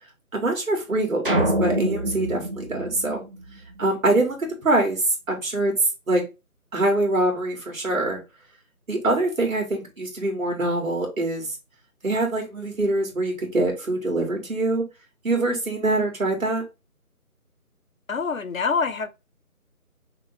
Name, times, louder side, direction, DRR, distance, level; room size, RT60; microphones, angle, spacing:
voice 1, 0.3-3.3 3.8-5.8 6.1-6.3 6.7-8.2 8.9-11.5 12.0-14.9 15.2-16.6, right 2 dB, 65° right, 2.1 m, -24 dB
sound 1, 1.2-3.7, right 1 dB, 35° right, 0.9 m, -25 dB
voice 2, 18.1-19.1, left 5 dB, 60° left, 0.7 m, -25 dB
5.9 x 2.1 x 3.4 m
figure-of-eight pair, 165°, 45 cm